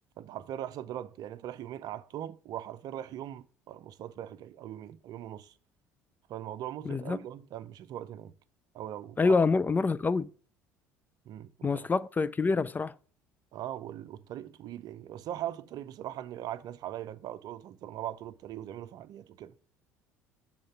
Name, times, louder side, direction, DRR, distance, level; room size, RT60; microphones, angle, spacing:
voice 1, 0.2-5.5 6.3-8.3 8.7-9.4 11.3-11.9 13.5-19.5, right 11 dB, 55° right, 0.6 m, -40 dB
voice 2, 6.8-7.2 9.2-10.3 11.6-12.9, left 4 dB, 20° left, 0.3 m, -26 dB
6.3 x 3.7 x 5.8 m
hypercardioid pair, 65°, 8 cm